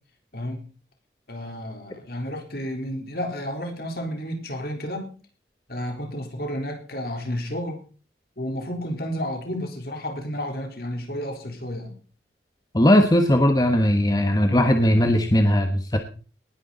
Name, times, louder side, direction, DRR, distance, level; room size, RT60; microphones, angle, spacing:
voice 1, 0.3-0.7 1.3-5.1 5.7-7.8 8.4-11.9, equal, 60° left, 4 dB, 3.9 m, -31 dB
voice 2, 12.7-16.0, left 1 dB, 20° left, 6 dB, 1.3 m, -18 dB
19.0 x 10.5 x 4.0 m, 0.38 s
head